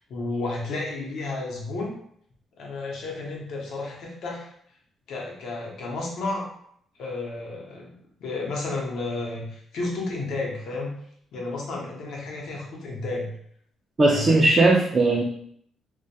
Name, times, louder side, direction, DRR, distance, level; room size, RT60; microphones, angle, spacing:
voice 1, 0.1-1.9 2.6-4.5 5.1-6.5 7.0-7.9 8.2-10.9 11.3-13.4 14.1-14.4, left 2 dB, 70° left, -2 dB, 0.7 m, -32 dB
voice 2, 14.0-15.2, right 2 dB, 30° right, -2 dB, 0.3 m, -18 dB
2.1 x 2.1 x 2.7 m, 0.66 s
cardioid pair, 130°, 0 cm